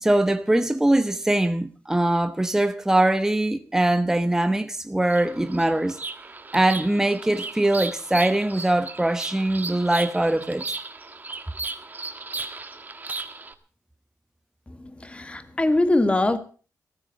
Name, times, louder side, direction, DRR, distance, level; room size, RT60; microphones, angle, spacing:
voice 1, 0.0-6.0 6.5-10.7, right 1 dB, 10° right, 1.0 m, -22 dB
Bird vocalization bird call bird song, 5.0-13.5, right 3 dB, 25° right, 1.4 m, -36 dB
voice 2, 14.8-16.4, left 2 dB, 20° left, 1.5 m, -22 dB
16.0 x 14.0 x 5.3 m
wide cardioid pair, 130°, 6 cm